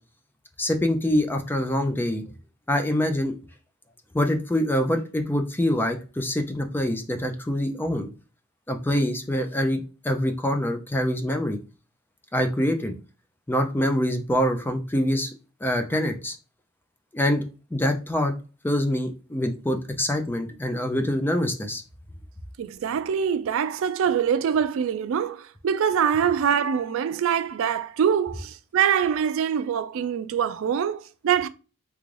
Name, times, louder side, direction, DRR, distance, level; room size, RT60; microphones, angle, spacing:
voice 1, 0.6-2.2 2.7-3.3 4.1-8.1 8.7-9.8 10.0-11.6 12.3-12.9 13.5-15.3 15.6-16.4 17.1-17.4 17.7-18.3 18.6-21.8, left 1 dB, 10° left, 0.4 m, -25 dB
voice 2, 22.6-31.5, right 8 dB, 65° right, 0.3 m, -24 dB
3.7 x 2.3 x 3.2 m
head